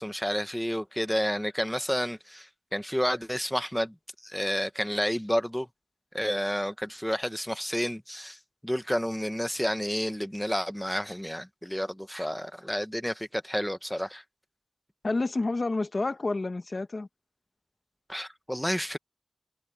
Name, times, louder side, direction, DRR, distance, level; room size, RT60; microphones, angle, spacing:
voice 1, 0.0-3.9 4.2-5.7 6.1-8.4 8.6-14.2 18.1-19.0, equal, 5° left, 1.2 m, -30 dB
voice 2, 15.0-17.1, left 2 dB, 55° left, 1.1 m, -29 dB
wide cardioid pair, 55°, 0 cm